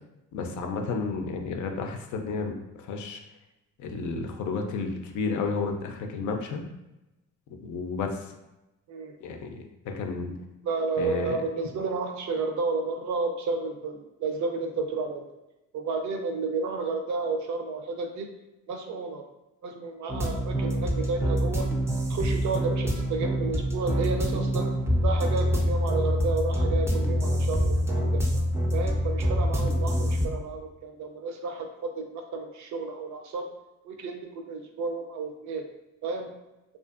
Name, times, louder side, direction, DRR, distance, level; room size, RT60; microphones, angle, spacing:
voice 1, 0.3-2.5 2.9-3.2 3.8-6.7 7.6-8.2 9.2-9.6 9.9-10.3 11.0-11.4, left 4 dB, 75° left, 4 dB, 0.5 m, -31 dB
voice 2, 10.6-15.2 15.7-18.3 18.7-19.2 19.6-21.7 22.1-24.7 25.0-28.2 28.7-33.5 33.8-35.7 36.0-36.3, right 3 dB, 70° right, 4 dB, 0.5 m, -31 dB
sound 1, 20.1-30.3, equal, 10° right, 0.4 m, -26 dB
2.6 x 2.5 x 2.4 m, 0.95 s
cardioid pair, 90°, 30 cm